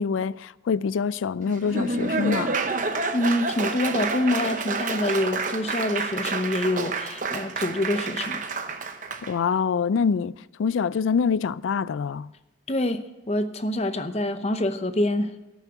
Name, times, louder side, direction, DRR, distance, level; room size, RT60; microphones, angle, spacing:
voice 1, 0.0-2.6 9.2-12.3, left 6 dB, 85° left, 0.4 m, -25 dB
Laughter / Applause, 1.4-9.3, right 3 dB, 40° right, 0.9 m, -29 dB
voice 2, 3.1-8.4 12.7-15.3, left 1 dB, 35° left, 0.8 m, -26 dB
12.5 x 7.2 x 8.1 m
head